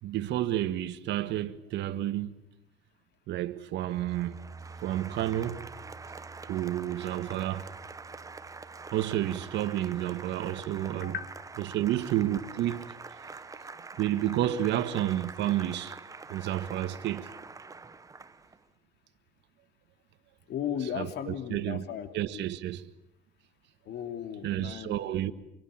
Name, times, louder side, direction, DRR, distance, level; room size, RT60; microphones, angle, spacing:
voice 1, 0.0-2.3 3.3-4.3 4.8-5.7 6.5-7.7 8.9-11.1 11.6-12.8 14.0-16.0 16.3-17.3 20.9-21.8 22.1-22.8 24.4-25.3, right 13 dB, 70° right, 1.6 m, -30 dB
Applause, 3.8-18.6, right 4 dB, 20° right, 1.0 m, -45 dB
sound 1, 4.0-12.9, right 4 dB, 5° left, 6.4 m, -52 dB
voice 2, 20.5-22.1 22.3-22.5 23.9-25.0, left 9 dB, 65° left, 2.9 m, -35 dB
26.5 x 23.0 x 8.8 m
cardioid pair, 125°, 19 cm